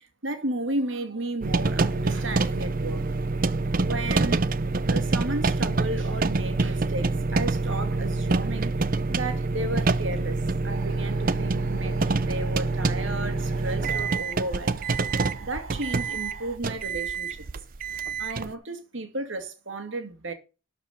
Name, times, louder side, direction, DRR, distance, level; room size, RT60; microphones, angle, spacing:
voice 1, 0.0-3.0 3.8-4.4 4.9-14.8 15.4-17.4 18.2-20.3, right 2 dB, 65° right, 2.3 m, -33 dB
sound 1, 1.4-18.5, right 3 dB, 45° right, 0.6 m, -26 dB
sound 2, 10.7-16.6, right 5 dB, 85° right, 1.1 m, -46 dB
12.5 x 5.0 x 7.0 m
head